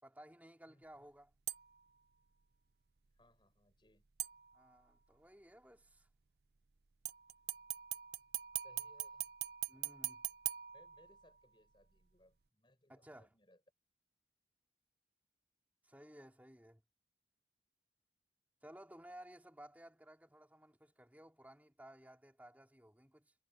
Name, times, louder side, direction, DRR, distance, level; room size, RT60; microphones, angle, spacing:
voice 1, 0.0-1.3 4.5-6.1 9.7-10.3 12.9-13.3 15.8-16.8 18.6-23.3, right 1 dB, 10° right, 3.6 m, -57 dB
voice 2, 0.7-1.0 3.1-4.1 8.6-9.3 10.7-13.6, left 1 dB, 25° left, 5.7 m, -68 dB
sound 1, 1.5-1.9 4.2-4.9 7.1-11.4 11.9-12.0, right 14 dB, 65° right, 0.7 m, -43 dB
head